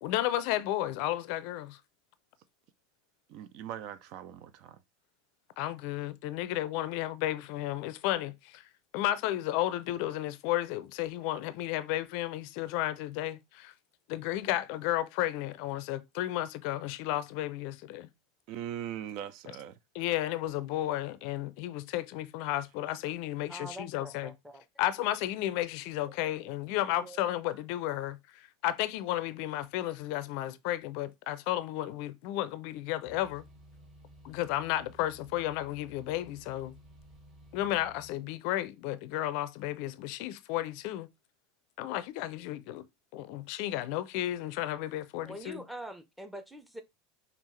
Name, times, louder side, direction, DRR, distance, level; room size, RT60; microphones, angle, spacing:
voice 1, 0.0-1.8 5.6-8.7 8.9-13.7 14.1-18.1 20.0-24.3 24.8-33.4 34.2-36.7 37.5-41.1 41.8-42.8 43.1-45.6, left 14 dB, 55° left, 0.4 m, -33 dB
voice 2, 3.3-4.8 18.5-19.8, right 10 dB, 55° right, 0.4 m, -40 dB
voice 3, 23.5-24.6 26.2-26.3 26.9-27.3 45.2-46.8, right 1 dB, 5° right, 0.8 m, -44 dB
sound 1, 33.0-38.1, right 1 dB, 35° right, 1.9 m, -55 dB
5.4 x 2.4 x 3.1 m
hypercardioid pair, 85°, 0 cm